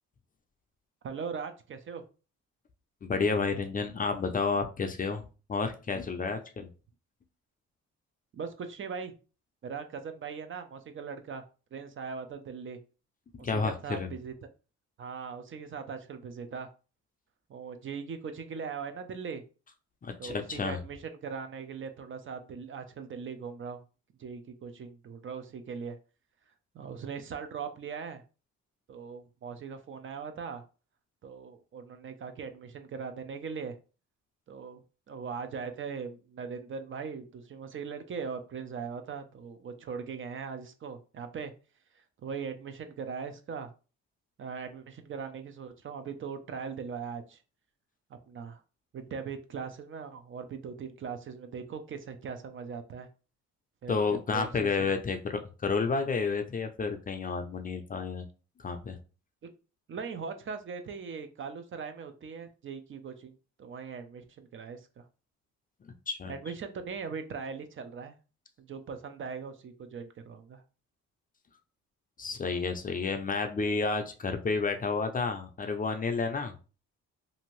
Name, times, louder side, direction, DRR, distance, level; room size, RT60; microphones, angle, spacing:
voice 1, 1.0-2.0 8.3-9.1 9.6-11.4 11.7-12.8 13.4-14.5 15.0-16.7 17.5-19.4 20.2-23.8 24.2-26.0 26.7-28.2 28.9-30.6 31.2-33.8 34.5-34.8 35.1-41.5 42.2-43.7 44.4-47.4 48.3-48.6 48.9-53.1 53.8-54.9 59.4-59.5 59.9-65.0 66.3-68.2 68.6-70.6, right 6 dB, 45° right, 8 dB, 0.5 m, -40 dB
voice 2, 3.0-5.2 5.5-6.7 13.3-14.1 20.0-20.8 53.9-58.3 58.6-59.0 65.8-66.3 72.2-76.5, left 4 dB, 30° left, 6 dB, 0.4 m, -31 dB
2.7 x 2.5 x 3.0 m, 0.34 s
cardioid pair, 90°, 30 cm